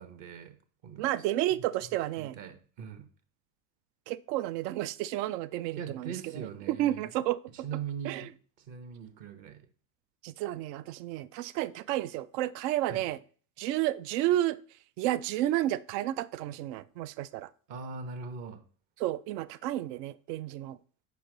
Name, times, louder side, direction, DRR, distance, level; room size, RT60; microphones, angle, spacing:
voice 1, 0.0-1.1 1.5-1.6 2.2-3.1 5.8-7.1 7.5-9.7 12.8-13.1 17.7-18.6, right 6 dB, 60° right, 1.2 m, -41 dB
voice 2, 1.0-2.4 4.1-6.4 6.7-7.4 8.0-8.2 10.2-13.2 13.6-14.6 15.0-17.5 19.0-20.8, right 14 dB, 75° right, 0.5 m, -31 dB
5.6 x 4.7 x 3.8 m
hypercardioid pair, 85°, 50 cm